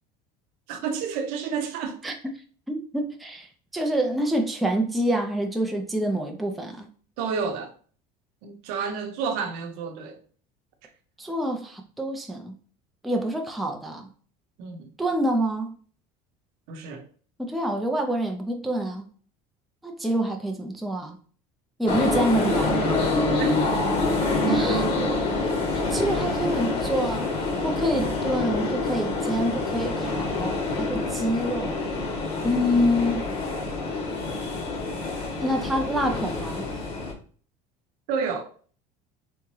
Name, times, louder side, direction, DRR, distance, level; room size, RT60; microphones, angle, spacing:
voice 1, 0.7-2.0 7.2-7.7 8.4-10.2 14.6-14.9 16.7-17.1 23.3-23.6 25.9-26.0 38.1-38.5, right 6 dB, 70° right, 0.7 m, -30 dB
voice 2, 2.7-3.5 3.7-6.9 11.2-12.5 13.0-14.1 15.0-15.7 17.4-19.0 19.8-21.2 21.8-22.8 24.5-24.9 25.7-27.2 27.6-31.8 32.4-33.3 35.4-36.6, equal, ahead, 0.4 m, -26 dB
sound 1, 21.9-37.1, left 2 dB, 35° left, 0.9 m, -26 dB
3.5 x 2.9 x 3.0 m
cardioid pair, 155°, 16 cm